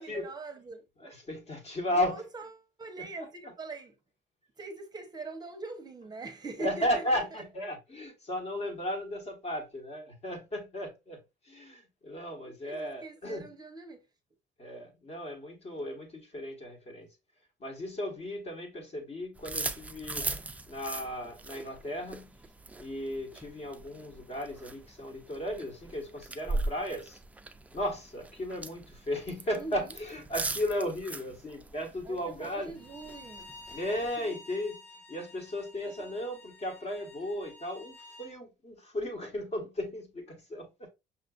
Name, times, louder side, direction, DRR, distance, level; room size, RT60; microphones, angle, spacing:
voice 1, 0.0-0.9 1.9-3.9 4.6-7.4 12.4-14.1 29.5-30.0 32.0-33.5 34.0-34.4 35.9-36.2, right 3 dB, 25° right, 0.7 m, -43 dB
voice 2, 1.0-2.2 6.6-11.2 11.5-13.4 14.6-17.1 17.6-20.3 20.7-22.3 22.8-27.2 27.7-32.7 33.7-34.8 35.1-40.9, left 1 dB, 40° left, 1.3 m, -35 dB
sound 1, 19.4-34.3, right 2 dB, 10° right, 0.3 m, -40 dB
Bowed string instrument, 32.8-38.3, left 2 dB, 80° left, 1.1 m, -51 dB
5.9 x 2.4 x 2.3 m
cardioid pair, 110°, 17 cm